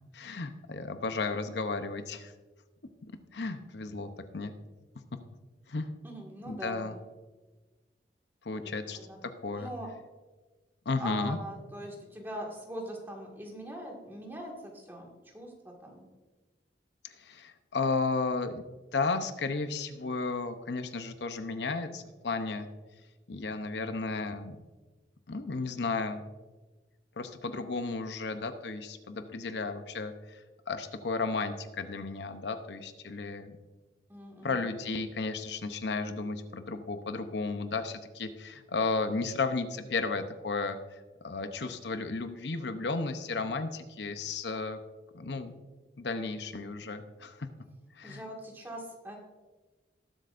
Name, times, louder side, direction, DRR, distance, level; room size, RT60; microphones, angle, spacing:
voice 1, 0.1-2.3 3.3-4.5 5.7-5.9 6.5-6.9 8.4-9.0 9.4-9.7 10.9-11.4 17.2-18.6 18.9-22.7 23.3-24.6 25.3-26.2 27.2-30.4 30.7-33.6 34.4-40.8 41.2-44.8 45.1-45.5 46.0-47.5 47.9-48.2, left 3 dB, 75° left, 8 dB, 0.7 m, -33 dB
voice 2, 6.0-7.0 8.6-9.2 9.5-9.9 11.0-15.1 15.3-16.1 34.1-34.6 48.0-49.2, equal, 10° right, -1 dB, 1.9 m, -42 dB
19.5 x 7.8 x 2.5 m, 1.2 s
head